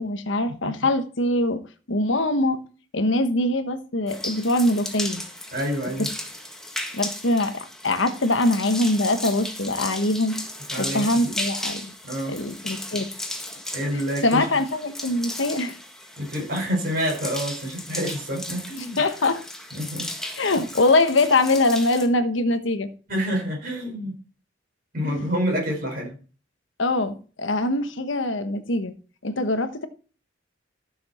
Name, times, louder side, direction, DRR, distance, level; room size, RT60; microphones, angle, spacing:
voice 1, 0.0-1.6 1.9-2.6 2.9-5.2 6.9-10.4 10.8-11.9 12.3-13.1 13.9-15.7 19.0-19.4 20.4-22.9 25.0-25.2 26.8-28.9 29.2-29.9, left 2 dB, 70° left, 1.2 m, -23 dB
sound 1, 4.1-22.1, left 1 dB, 5° left, 1.7 m, -35 dB
voice 2, 5.5-6.1 10.7-11.3 12.0-12.3 13.7-14.4 16.2-19.0 19.7-20.1 23.1-24.2 24.9-26.2, equal, 50° right, 5.0 m, -28 dB
13.5 x 7.1 x 4.3 m
head